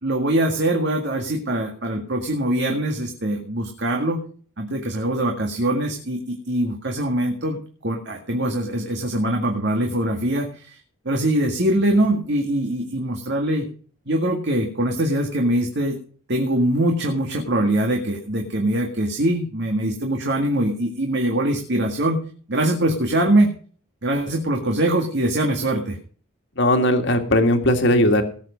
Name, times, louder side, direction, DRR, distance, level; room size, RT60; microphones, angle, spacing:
voice 1, 0.0-4.2 4.6-10.8 11.1-13.7 14.1-16.0 16.3-22.2 22.5-23.5 24.0-26.0, right 1 dB, 55° right, 2 dB, 2.0 m, -22 dB
voice 2, 26.6-28.2, left 1 dB, 55° left, 5 dB, 2.1 m, -18 dB
18.5 x 7.4 x 5.2 m, 0.43 s
head